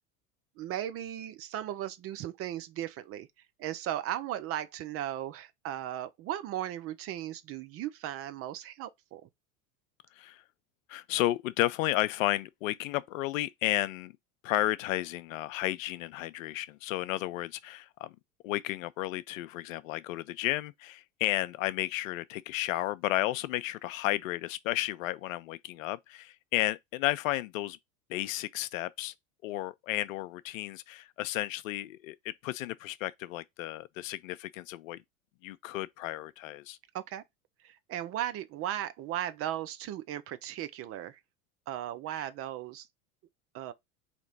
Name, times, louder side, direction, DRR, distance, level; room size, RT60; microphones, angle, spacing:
voice 1, 0.6-3.3 3.6-9.3 36.9-37.2 37.6-41.2 41.7-42.9 43.5-43.7, right 12 dB, 35° right, 0.5 m, -36 dB
voice 2, 10.9-14.1 14.4-18.1 18.4-27.8 28.1-29.1 29.4-35.0 35.4-36.8 42.1-42.3, left 16 dB, 65° left, 0.5 m, -33 dB
4.3 x 2.9 x 3.9 m
hypercardioid pair, 85°, 43 cm